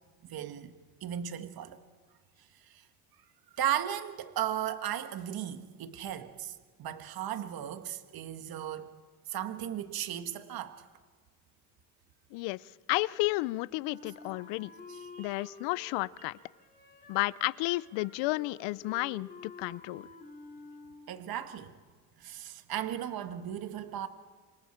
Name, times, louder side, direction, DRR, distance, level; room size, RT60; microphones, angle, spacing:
voice 1, 0.2-0.7 1.0-1.8 2.6-2.9 3.5-8.9 9.3-10.9 14.9-15.5 21.1-21.7 22.2-24.1, right 11 dB, 55° right, 1.6 m, -36 dB
voice 2, 12.3-12.6 12.9-14.7 15.2-16.4 17.1-20.1, left 21 dB, 75° left, 0.7 m, -32 dB
Wind instrument woodwind instrument, 13.8-21.4, left 3 dB, 20° left, 4.9 m, -51 dB
28.0 x 25.0 x 4.5 m
supercardioid pair, 95°, 44 cm